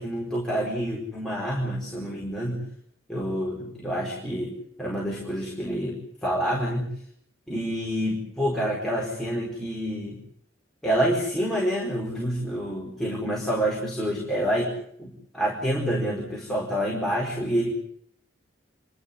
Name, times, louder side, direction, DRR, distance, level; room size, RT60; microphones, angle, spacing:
voice 1, 0.0-2.6 3.1-4.5 4.8-6.9 7.5-10.2 10.8-14.7 15.0-17.7, equal, 5° left, -4 dB, 4.8 m, -27 dB
28.0 x 13.0 x 9.8 m, 0.69 s
head